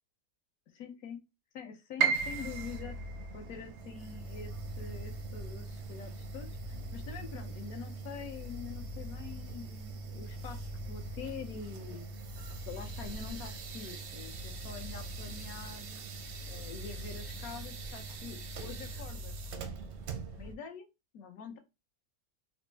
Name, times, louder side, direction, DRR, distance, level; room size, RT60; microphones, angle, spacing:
voice 1, 0.7-1.2 1.5-3.0 3.3-12.3 12.7-16.0 16.5-19.5 20.1-20.9 21.1-21.6, left 6 dB, 70° left, 4 dB, 1.1 m, -45 dB
Piano, 2.0-7.9 8.3-9.4 9.8-9.9 10.6-11.0, right 7 dB, 85° right, 1.1 m, -37 dB
sound 1, 2.1-20.6, right 2 dB, 65° right, 0.7 m, -42 dB
4.1 x 2.0 x 3.2 m, 0.25 s
omnidirectional pair, 1.6 m